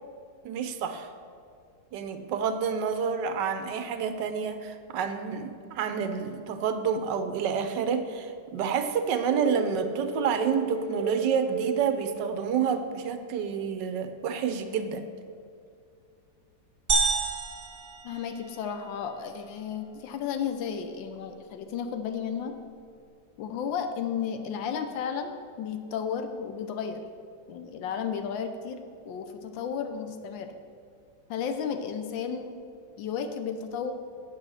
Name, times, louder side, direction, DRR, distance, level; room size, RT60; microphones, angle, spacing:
voice 1, 0.4-1.1 1.9-15.0, right 7 dB, 75° right, 9 dB, 1.3 m, -29 dB
sound 1, 9.3-12.5, right 2 dB, 45° left, 1.7 m, -34 dB
sound 2, 16.9-18.8, right 4 dB, 35° right, 1.9 m, -29 dB
voice 2, 18.0-22.5 23.4-27.0 27.5-28.8 29.0-30.5 31.3-32.6 33.0-33.9, left 7 dB, 90° left, 7 dB, 1.4 m, -33 dB
8.7 x 7.5 x 6.2 m, 2.3 s
omnidirectional pair, 2.0 m